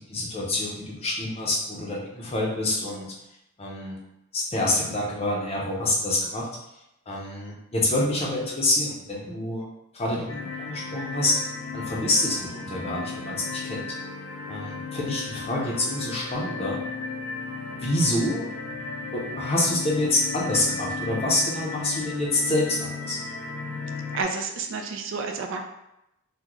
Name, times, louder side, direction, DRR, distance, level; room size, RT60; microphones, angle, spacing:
voice 1, 0.0-3.1 3.6-4.0 4.3-6.5 7.1-9.7 9.9-11.4 11.7-14.0 14.5-16.8 17.8-18.5 19.1-23.2, left 1 dB, 25° left, -3 dB, 0.6 m, -27 dB
sound 1, 10.3-24.2, left 4 dB, 85° left, 0.6 m, -35 dB
voice 2, 24.1-25.6, right 4 dB, 60° right, 3 dB, 0.3 m, -30 dB
3.6 x 2.1 x 3.0 m, 0.87 s
head